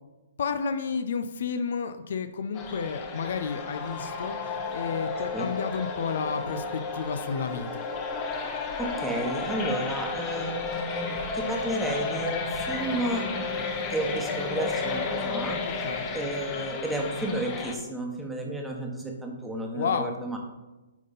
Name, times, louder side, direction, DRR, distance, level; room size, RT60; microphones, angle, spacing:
voice 1, 0.4-7.9 15.6-16.1 19.7-20.1, left 6 dB, 65° left, 10 dB, 0.5 m, -31 dB
sound 1, 2.5-17.8, left 4 dB, 30° left, 0.9 m, -32 dB
voice 2, 8.8-13.3 13.9-15.6 16.1-20.4, right 1 dB, 5° right, 0 dB, 1.2 m, -32 dB
9.1 x 3.7 x 4.1 m, 1.1 s
hypercardioid pair, 135°, 0 cm